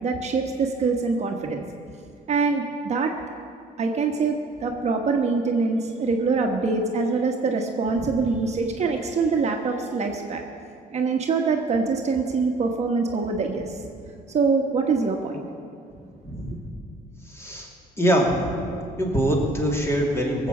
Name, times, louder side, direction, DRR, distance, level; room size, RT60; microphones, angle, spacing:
voice 1, 0.0-1.6 2.3-3.1 3.8-10.4 10.9-13.8 14.3-15.4, right 4 dB, 40° right, 2 dB, 1.2 m, -24 dB
voice 2, 16.2-16.6 17.3-17.7 18.0-18.6 19.0-20.5, equal, 15° left, -1 dB, 2.7 m, -23 dB
18.0 x 7.6 x 7.2 m, 2.4 s
cardioid pair, 110°, 17 cm